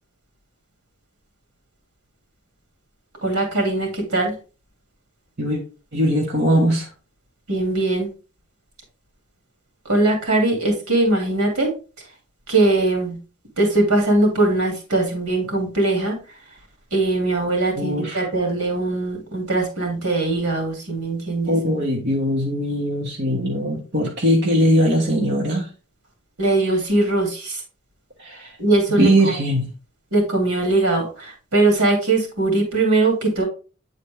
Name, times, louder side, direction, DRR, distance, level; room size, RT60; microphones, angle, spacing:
voice 1, 3.2-4.3 7.5-8.1 9.9-11.7 12.5-13.2 13.6-16.2 16.9-21.6 26.4-27.6 28.6-29.1 30.1-33.4, right 2 dB, 85° right, 2 dB, 2.4 m, -20 dB
voice 2, 5.9-6.9 17.8-18.3 21.5-25.7 28.2-28.5 28.9-29.7, equal, 50° right, -2 dB, 1.3 m, -20 dB
8.4 x 4.1 x 3.3 m, 0.34 s
head